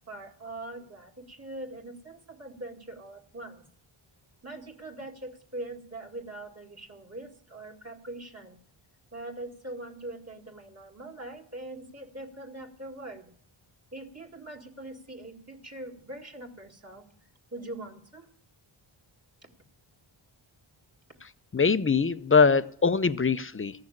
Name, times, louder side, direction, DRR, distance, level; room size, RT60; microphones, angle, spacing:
voice 1, 0.1-3.6 4.4-8.6 9.1-13.3 13.9-17.1 17.5-18.3, right 2 dB, 30° right, 2 dB, 1.9 m, -42 dB
voice 2, 21.5-23.7, left 5 dB, 25° left, 13 dB, 0.5 m, -22 dB
14.5 x 6.4 x 9.8 m, 0.63 s
wide cardioid pair, 85°, 50 cm